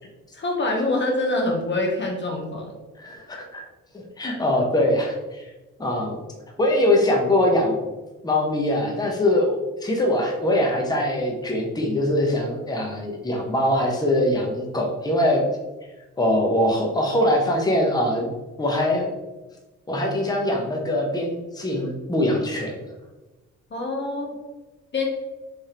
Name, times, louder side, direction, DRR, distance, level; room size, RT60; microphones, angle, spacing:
voice 1, 0.3-2.8 23.7-24.4 24.9-25.1, left 2 dB, 40° left, 1 dB, 0.9 m, -25 dB
voice 2, 3.0-3.6 3.9-5.4 5.8-6.2 6.6-7.8 8.2-15.4 16.2-18.3 18.6-19.1 19.9-22.7, left 1 dB, 15° left, 0 dB, 0.9 m, -22 dB
3.5 x 3.4 x 4.3 m, 1.1 s
cardioid pair, 90°, 30 cm